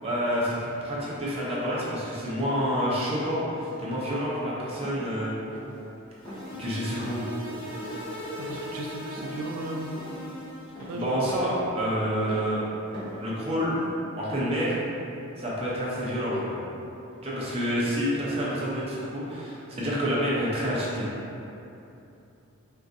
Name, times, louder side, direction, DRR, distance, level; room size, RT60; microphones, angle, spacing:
voice 1, 0.0-5.4 6.6-7.3 10.9-12.6 13.2-13.7 14.2-14.8 15.4-16.6 17.2-21.1, equal, 30° right, -7 dB, 0.5 m, -28 dB
sound 1, 4.8-5.1 5.5-5.8 6.2-6.5 7.0-7.3 7.7-8.0 8.4-8.7 9.2-9.4 9.9-10.3 10.8-11.1 11.5-11.8 12.3-12.5 12.9-13.3 13.6-13.9, equal, 20° left, 0.8 m, -43 dB
sound 2, 6.1-10.9, equal, 65° left, 0.9 m, -38 dB
voice 2, 8.4-10.0 10.9-11.0, right 1 dB, 85° right, 0 dB, 0.3 m, -37 dB
3.8 x 2.3 x 2.5 m, 2.9 s
head